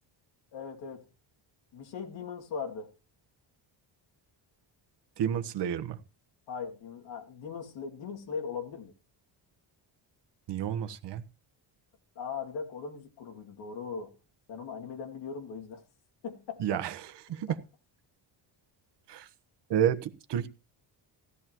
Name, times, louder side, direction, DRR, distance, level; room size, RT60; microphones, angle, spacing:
voice 1, 0.5-1.1 1.7-2.9 6.5-8.9 12.2-14.1 14.5-15.8 16.2-16.8, left 6 dB, 70° left, 2.6 m, -39 dB
voice 2, 5.2-6.0 10.5-11.2 16.6-17.6 19.1-19.3 19.7-20.5, right 9 dB, 60° right, 1.2 m, -30 dB
16.5 x 12.5 x 3.0 m
cardioid pair, 160°, 46 cm